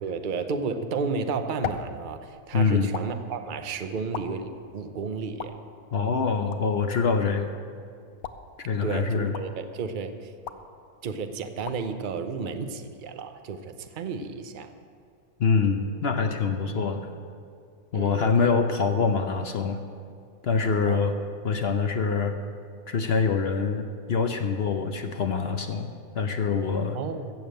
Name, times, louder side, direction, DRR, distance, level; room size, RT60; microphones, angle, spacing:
voice 1, 0.0-5.6 7.2-7.4 8.8-10.3 11.0-14.7 16.7-16.9 17.9-18.5 20.9-21.1 26.9-27.3, right 5 dB, 45° right, 8 dB, 0.7 m, -32 dB
sound 1, 1.0-13.1, left 8 dB, 75° left, 1.1 m, -42 dB
voice 2, 2.5-2.9 5.9-7.5 8.6-9.3 15.4-17.1 17.9-19.8 20.4-21.1 21.4-22.4 22.9-27.0, left 5 dB, 55° left, 6 dB, 0.8 m, -25 dB
15.5 x 7.2 x 7.7 m, 2.2 s
omnidirectional pair, 1.6 m